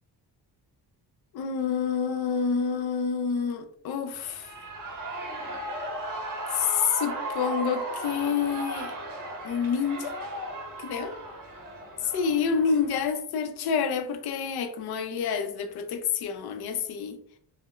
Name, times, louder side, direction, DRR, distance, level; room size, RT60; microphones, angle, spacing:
voice 1, 1.3-4.5 6.5-8.9 9.4-10.2 10.8-11.2 12.1-17.2, left 6 dB, 65° left, 0.5 m, -28 dB
Shout / Cheering, 4.1-13.1, right 1 dB, 50° right, 0.8 m, -36 dB
2.9 x 2.0 x 2.2 m
cardioid pair, 105°, 42 cm